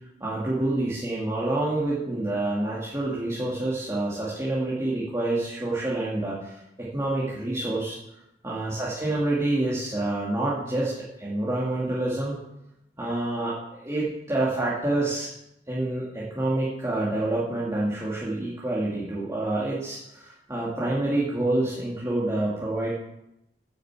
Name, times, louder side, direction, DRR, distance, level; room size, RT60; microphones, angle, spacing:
voice 1, 0.2-8.0 8.4-12.3 13.0-15.3 15.7-22.9, right 2 dB, 15° right, -7 dB, 2.3 m, -27 dB
9.4 x 7.1 x 8.2 m, 0.86 s
head